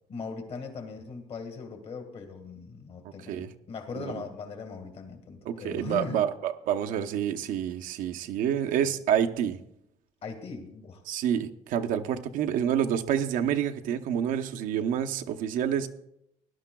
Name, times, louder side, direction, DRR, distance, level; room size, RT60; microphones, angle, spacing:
voice 1, 0.1-6.2 8.8-9.0 10.2-11.0, left 5 dB, 45° left, 5 dB, 1.8 m, -39 dB
voice 2, 5.5-9.6 11.1-15.9, right 9 dB, 85° right, 6 dB, 0.8 m, -28 dB
19.5 x 11.5 x 2.3 m, 0.81 s
cardioid pair, 145°, 14 cm